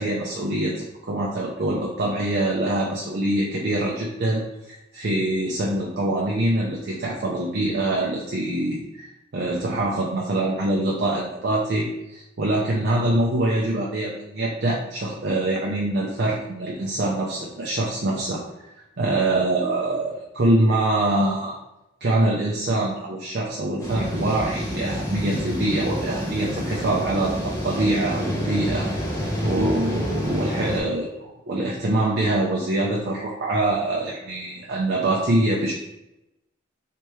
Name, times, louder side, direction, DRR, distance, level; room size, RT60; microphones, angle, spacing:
voice 1, 0.0-18.4 19.0-21.6 22.0-28.9 29.4-35.7, right 1 dB, 55° right, -3 dB, 0.5 m, -24 dB
sound 1, 23.8-30.8, equal, 15° left, 0.8 m, -28 dB
3.3 x 3.0 x 3.1 m, 0.92 s
head